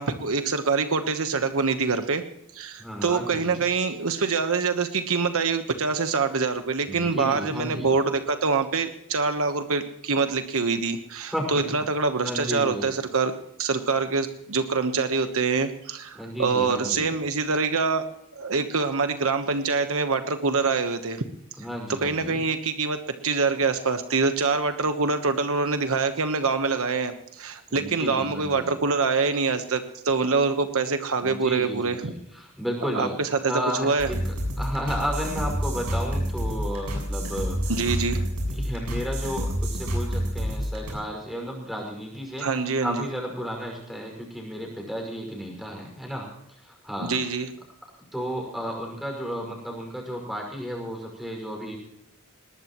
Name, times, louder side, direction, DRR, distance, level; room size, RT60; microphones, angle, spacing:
voice 1, 0.0-2.2 2.5-13.3 13.6-18.0 18.3-21.2 22.0-23.0 23.2-32.1 32.9-33.5 33.8-34.1 37.7-38.2 42.4-43.1 47.0-47.5, right 4 dB, 65° right, 8 dB, 1.2 m, -25 dB
voice 2, 2.8-3.6 6.9-8.0 11.3-11.6 12.2-12.9 16.1-17.1 21.6-22.4 27.7-28.7 31.2-33.2 33.5-37.7 38.6-46.3 46.6-47.2 48.1-51.8, equal, ahead, 1 dB, 5.7 m, -33 dB
sound 1, 34.0-40.9, equal, 80° right, 7.5 m, -28 dB
20.5 x 19.5 x 3.1 m, 0.76 s
head